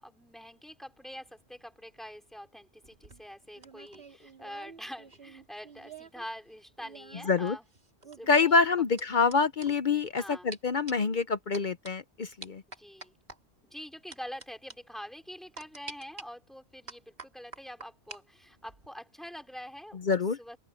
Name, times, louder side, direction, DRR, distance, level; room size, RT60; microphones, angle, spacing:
voice 1, 0.0-7.6 8.1-8.6 10.2-10.5 12.8-13.2 13.7-20.6, equal, ahead, 3.6 m, -45 dB
sound 1, 2.8-6.2 6.5-10.2 10.5-10.6 10.9-11.1 11.5-11.9 12.4-13.4 14.1-14.4 14.7-14.8 15.6-16.2 16.9-18.2 18.5-18.9, right 3 dB, 50° right, 2.9 m, -48 dB
voice 2, 8.3-12.6 20.1-20.4, left 4 dB, 50° left, 0.7 m, -26 dB
open air
omnidirectional pair, 1.2 m